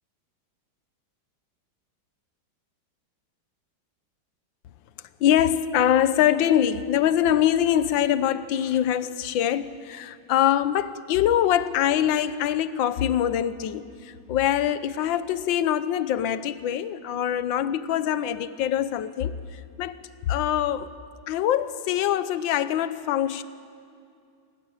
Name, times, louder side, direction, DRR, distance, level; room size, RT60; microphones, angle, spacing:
voice 1, 5.2-20.9 21.3-23.4, left 10 dB, 70° left, 13 dB, 1.5 m, -24 dB
28.0 x 19.0 x 9.0 m, 2.4 s
omnidirectional pair, 2.2 m